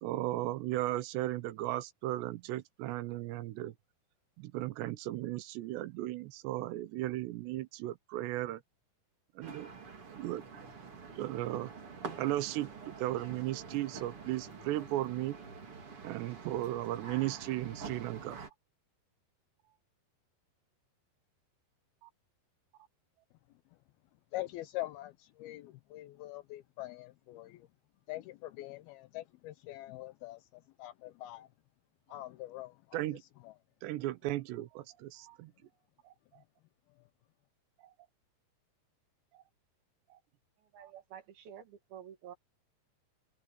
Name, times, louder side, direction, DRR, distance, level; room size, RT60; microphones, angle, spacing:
voice 1, 0.0-3.7 4.4-8.6 9.4-9.7 10.2-10.4 11.1-11.7 12.2-15.4 16.0-18.4 22.0-22.1 32.9-33.2 33.8-35.5 36.1-36.2 39.3-39.4, right 15 dB, 85° right, 3.1 m, -36 dB
sound 1, 9.4-18.5, right 5 dB, 35° right, 3.4 m, -47 dB
voice 2, 24.3-27.7 28.1-31.5 32.1-33.2 33.4-33.6 36.4-36.5 36.9-37.1, left 16 dB, 80° left, 2.3 m, -44 dB
voice 3, 40.6-42.4, right 9 dB, 65° right, 3.6 m, -50 dB
omnidirectional pair, 4.9 m